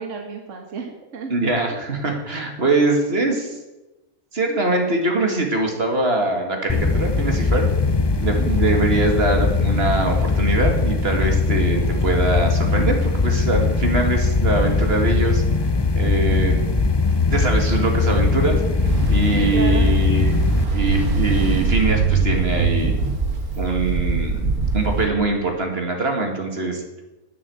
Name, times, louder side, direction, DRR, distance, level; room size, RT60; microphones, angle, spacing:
voice 1, 0.0-1.3 1.7-1.8 8.3-8.6 19.3-19.9, right 4 dB, 60° right, 3 dB, 1.7 m, -32 dB
voice 2, 1.3-3.6 4.3-7.7 8.2-15.4 15.9-16.6 17.3-18.6 19.1-20.4 20.7-22.9 23.6-24.4 24.7-26.8, right 2 dB, 45° right, 3 dB, 2.3 m, -22 dB
sound 1, 6.7-20.6, left 3 dB, 35° left, 0.4 m, -20 dB
Ocean, 18.8-25.1, right 4 dB, 80° right, 2.1 m, -22 dB
10.0 x 9.5 x 7.8 m, 1.0 s
omnidirectional pair, 1.5 m